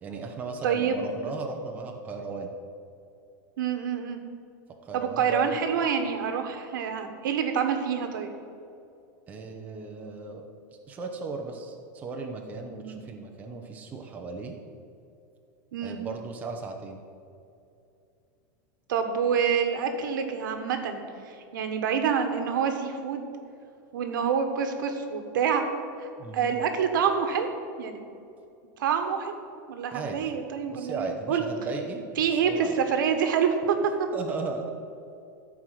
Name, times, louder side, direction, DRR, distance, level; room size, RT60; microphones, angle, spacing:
voice 1, 0.0-2.5 4.8-5.6 9.3-10.4 10.9-14.5 15.8-17.0 26.2-26.5 29.9-30.3 30.7-32.8 34.1-34.7, right 4 dB, 15° right, 2 dB, 0.8 m, -36 dB
voice 2, 0.6-1.2 3.6-4.2 4.9-8.3 12.7-13.0 15.7-16.0 18.9-23.3 23.9-25.6 26.0-26.1 26.3-27.5 27.8-28.0 28.8-29.3 29.7-31.4 32.2-34.1, right 7 dB, 85° right, 6 dB, 1.4 m, -27 dB
13.5 x 4.9 x 7.7 m, 2.6 s
supercardioid pair, 175°, 10 cm